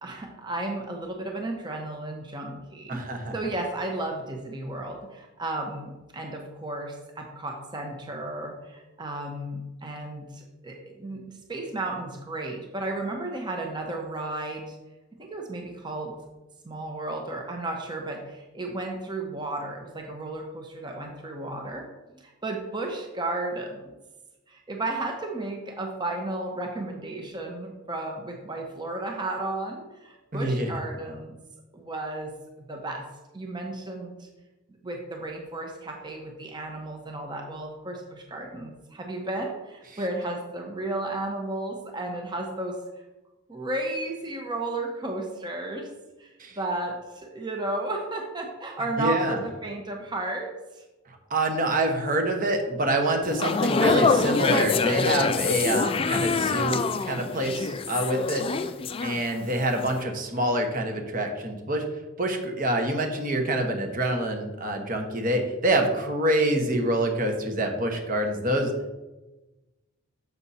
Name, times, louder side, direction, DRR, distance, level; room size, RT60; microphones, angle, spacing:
voice 1, 0.0-3.0 3.3-11.2 11.5-14.8 15.2-16.1 16.6-21.9 22.2-23.8 24.5-31.4 31.7-32.3 32.7-33.0 33.3-34.3 34.8-42.8 43.5-45.9 46.2-50.8, right 2 dB, 20° right, 1 dB, 0.8 m, -33 dB
voice 2, 2.9-3.3 30.3-30.7 46.4-46.6 49.0-49.4 51.1-58.4 59.0-61.8 62.2-68.9, right 1 dB, 45° right, 4 dB, 1.1 m, -26 dB
sound 1, 53.2-59.5 59.8-60.0, left 4 dB, 25° left, 0.3 m, -25 dB
6.9 x 6.1 x 4.2 m, 1.1 s
head